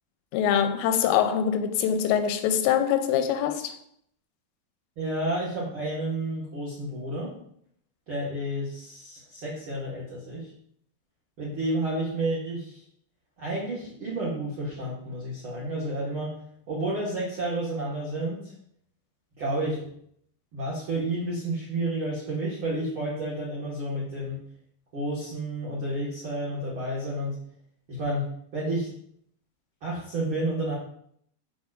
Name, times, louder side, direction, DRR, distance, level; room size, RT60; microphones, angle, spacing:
voice 1, 0.3-3.7, left 9 dB, 85° left, 2.8 m, -24 dB
voice 2, 5.0-7.3 8.1-10.5 11.4-12.8 13.4-16.3 16.7-18.5 19.4-19.9 20.5-24.4 24.9-27.4 27.9-28.9 29.8-30.7, right 1 dB, 90° right, 1.1 m, -30 dB
7.2 x 7.1 x 2.5 m
omnidirectional pair, 5.2 m